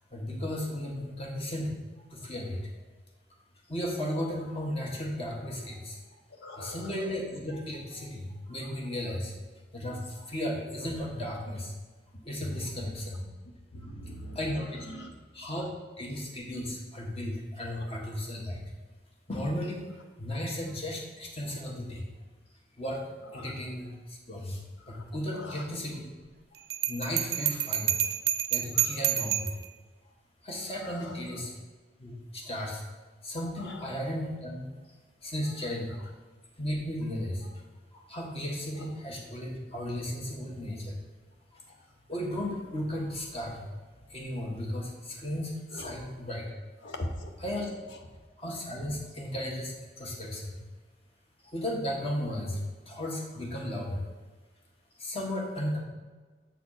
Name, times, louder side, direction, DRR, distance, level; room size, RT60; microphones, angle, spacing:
voice 1, 0.1-1.7 2.0-2.6 3.7-6.0 6.5-9.3 9.7-11.7 12.2-13.2 14.3-14.8 15.3-15.6 16.0-18.6 19.3-19.9 20.2-22.0 22.8-23.0 23.3-24.6 24.9-26.1 26.5-26.6 26.9-27.9 28.5-29.5 30.4-31.5 32.0-32.8 33.2-34.7 35.2-36.1 36.6-37.5 37.9-40.9 41.5-41.6 42.1-43.6 44.1-46.5 46.8-46.9 47.4-47.7 48.4-50.5 51.4-52.6 52.9-54.0 55.0-55.8, left 1 dB, 35° left, -1 dB, 1.4 m, -35 dB
voice 2, 6.4-6.9 11.0-11.1 12.4-12.9 13.7-15.1 17.8-17.9 23.3-23.5 24.8-25.0 25.3-25.6 28.7-29.0 30.8-31.2 33.6-33.8 38.8-38.9 45.7-45.9 46.8-47.3, left 1 dB, 80° left, 4 dB, 1.0 m, -41 dB
Bell, 26.7-29.7, right 11 dB, 60° right, 0.4 m, -28 dB
7.4 x 4.2 x 5.5 m, 1.3 s
head